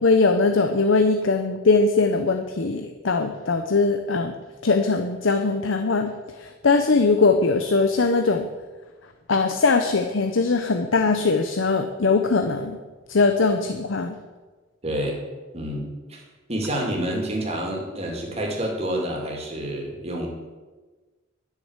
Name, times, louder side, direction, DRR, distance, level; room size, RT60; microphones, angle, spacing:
voice 1, 0.0-4.3 4.6-6.1 6.4-8.5 9.3-12.8 13.1-14.2, left 3 dB, 85° left, 6 dB, 0.8 m, -21 dB
voice 2, 14.8-15.2 15.5-16.2 16.5-20.3, right 1 dB, 35° right, 0 dB, 2.7 m, -28 dB
11.5 x 6.7 x 8.2 m, 1.3 s
head